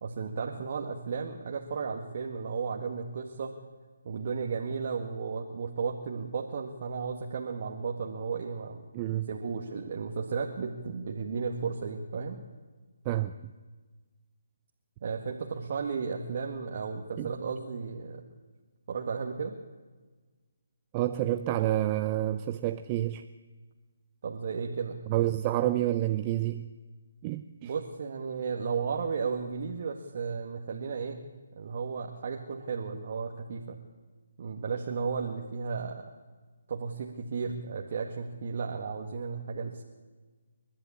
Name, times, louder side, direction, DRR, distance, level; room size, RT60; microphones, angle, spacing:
voice 1, 0.0-3.5 4.0-8.9 9.3-12.4 15.0-18.2 18.9-19.6 24.2-25.0 27.6-31.3 31.6-33.8 34.4-36.0 36.7-39.8, right 5 dB, 50° right, 1 dB, 1.9 m, -34 dB
voice 2, 8.9-9.3 13.0-13.5 17.2-17.3 20.9-23.3 25.1-26.7 27.2-27.7, right 14 dB, 25° right, 10 dB, 0.6 m, -29 dB
29.5 x 11.5 x 8.7 m, 1.4 s
figure-of-eight pair, 150°, 0 cm